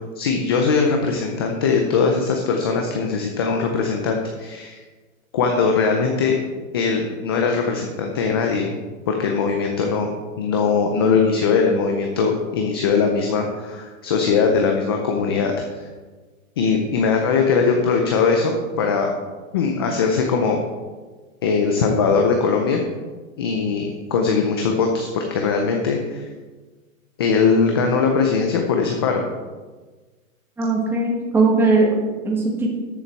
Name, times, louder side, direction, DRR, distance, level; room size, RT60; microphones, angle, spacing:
voice 1, 0.2-4.8 5.3-6.4 6.7-8.7 9.1-10.1 10.4-15.9 16.6-19.1 19.5-20.6 21.4-22.8 23.4-26.2 27.2-29.3, left 5 dB, 20° left, 3 dB, 0.4 m, -20 dB
voice 2, 30.6-32.7, right 3 dB, 5° right, -2 dB, 1.4 m, -19 dB
13.5 x 7.1 x 4.5 m, 1.3 s
hypercardioid pair, 160°, 42 cm